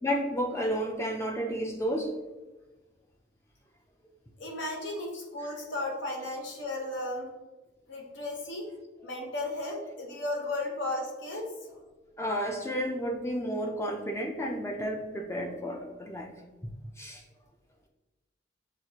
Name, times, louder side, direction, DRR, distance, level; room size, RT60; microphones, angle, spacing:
voice 1, 0.0-2.1 12.2-16.3 17.0-17.2, equal, 15° left, 2 dB, 0.4 m, -31 dB
voice 2, 4.4-7.3 7.9-8.7 9.0-11.5, left 2 dB, 75° left, 0 dB, 0.9 m, -34 dB
6.0 x 2.5 x 2.8 m, 1.1 s
head